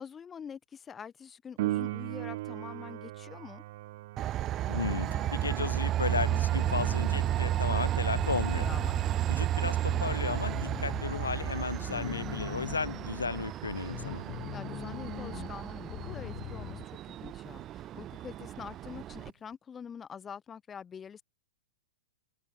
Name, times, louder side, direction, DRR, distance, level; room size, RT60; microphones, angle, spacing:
voice 1, 0.0-3.6 8.6-8.9 11.8-12.4 14.3-21.2, left 7 dB, 20° left, 1.6 m, -45 dB
Piano, 1.6-12.0 19.5-19.6, right 17 dB, 55° right, 1.9 m, -41 dB
Train, 4.2-19.3, right 13 dB, 30° right, 0.3 m, -32 dB
voice 2, 4.7-8.7 9.3-14.3, left 5 dB, 85° left, 1.6 m, -34 dB
sound 1, 4.8-16.9, left 20 dB, 40° left, 1.1 m, -43 dB
hypercardioid pair, 110°, 0 cm